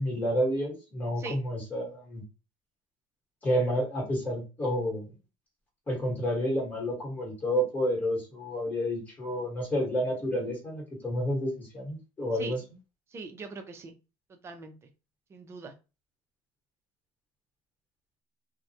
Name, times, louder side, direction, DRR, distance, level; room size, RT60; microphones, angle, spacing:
voice 1, 0.0-2.2 3.4-5.1 5.9-12.6, equal, 15° left, -2 dB, 1.2 m, -30 dB
voice 2, 13.1-13.9 14.3-14.7 15.3-15.7, right 4 dB, 25° right, 6 dB, 0.4 m, -41 dB
2.3 x 2.1 x 2.7 m, 0.30 s
cardioid pair, 140°, 11 cm